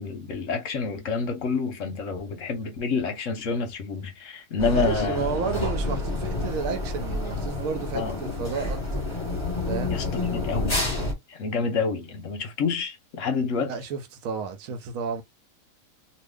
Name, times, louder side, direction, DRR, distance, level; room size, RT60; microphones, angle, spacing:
voice 1, 0.0-5.4 7.9-8.2 9.9-10.8 11.3-13.7, left 4 dB, 60° left, 0.9 m, -28 dB
sound 1, 4.6-11.1, left 2 dB, 20° left, 1.1 m, -29 dB
voice 2, 4.7-9.0 9.7-10.0 13.7-15.2, right 6 dB, 65° right, 1.0 m, -31 dB
2.8 x 2.4 x 3.4 m
omnidirectional pair, 1.8 m